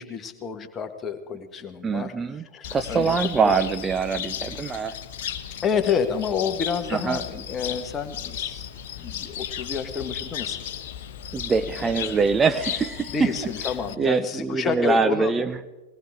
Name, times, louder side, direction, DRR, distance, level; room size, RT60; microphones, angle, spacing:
voice 1, 0.0-2.1 2.5-3.2 3.4-3.5 5.6-8.7 9.0-10.6 11.7-12.1 13.1-15.4, left 6 dB, 25° left, 7 dB, 1.5 m, -29 dB
voice 2, 1.8-2.4 2.7-4.9 6.9-7.2 11.3-13.3 14.0-15.6, right 5 dB, 20° right, 11 dB, 0.5 m, -23 dB
Cricket, 2.6-13.9, left 9 dB, 55° left, 1.0 m, -35 dB
21.0 x 18.0 x 3.6 m, 1.1 s
figure-of-eight pair, 90°, 0 cm